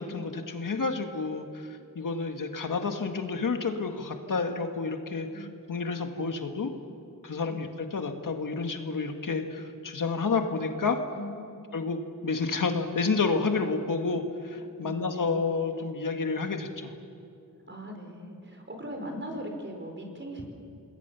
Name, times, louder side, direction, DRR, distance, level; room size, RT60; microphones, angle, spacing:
voice 1, 0.0-6.7 7.2-11.0 11.7-12.0 12.2-16.9, left 4 dB, 70° left, 5 dB, 1.8 m, -30 dB
voice 2, 5.3-5.6 7.5-7.7 11.1-11.6 14.8-15.4 17.7-20.4, equal, 35° right, 3 dB, 4.9 m, -40 dB
27.5 x 20.5 x 7.0 m, 2.5 s
wide cardioid pair, 90°, 33 cm